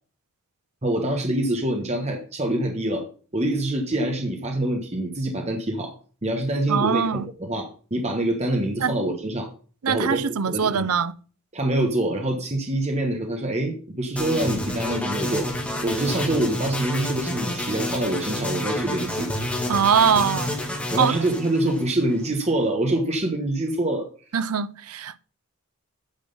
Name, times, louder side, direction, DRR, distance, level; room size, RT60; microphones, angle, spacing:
voice 1, 0.8-3.1 3.3-6.0 6.2-9.5 9.9-10.9 11.5-15.5 15.8-19.3 20.9-24.1, right 1 dB, 30° right, 1.3 m, -25 dB
voice 2, 6.7-7.3 8.8-8.9 9.8-11.1 19.7-20.6 21.0-21.2 24.3-25.2, right 7 dB, 85° right, 0.6 m, -22 dB
sound 1, 14.2-22.2, left 1 dB, 5° left, 2.4 m, -29 dB
9.0 x 6.3 x 5.4 m
head